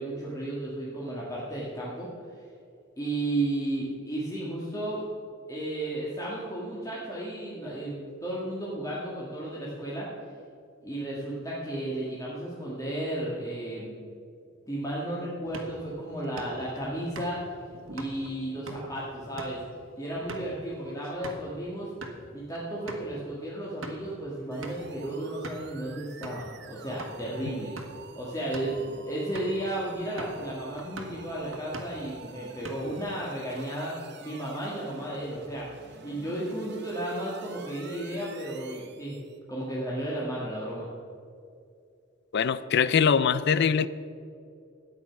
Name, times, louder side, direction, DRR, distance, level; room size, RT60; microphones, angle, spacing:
voice 1, 0.0-2.4 3.0-5.0 5.5-10.1 10.8-13.9 14.7-17.4 17.9-19.6 20.0-21.9 22.3-27.7 28.2-33.9 34.2-39.2 39.5-40.9, right 1 dB, 15° left, -6 dB, 1.9 m, -33 dB
sound 1, 15.4-21.5 21.9-22.2 22.5-22.6 22.9-23.1 23.6-24.1 24.6-24.9 25.4-25.7 26.2-26.5 27.0-27.2 27.6-28.0 28.4-28.8 29.3-29.6 30.2-30.5 30.8-31.2 31.5-32.1 32.4-33.1, right 1 dB, 85° right, 1.6 m, -42 dB
sound 2, 24.5-39.4, right 5 dB, 60° right, 1.0 m, -49 dB
voice 2, 42.3-43.9, left 6 dB, 55° left, 16 dB, 0.4 m, -22 dB
13.0 x 9.5 x 5.9 m, 2.5 s
head